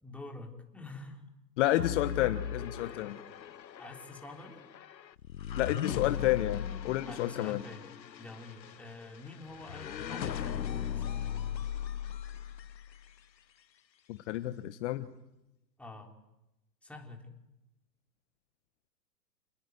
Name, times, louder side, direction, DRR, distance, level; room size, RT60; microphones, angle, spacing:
voice 1, 0.0-1.2 3.8-4.6 7.1-7.9 8.2-11.2 15.8-16.1 16.8-17.3, left 2 dB, 5° left, 1 dB, 3.8 m, -47 dB
voice 2, 1.6-3.2 5.6-7.6 14.1-15.1, left 15 dB, 45° left, 11 dB, 1.3 m, -30 dB
sound 1, 1.8-13.1, left 9 dB, 85° left, 0.9 m, -38 dB
29.0 x 20.0 x 9.4 m, 0.94 s
hypercardioid pair, 115°, 50 cm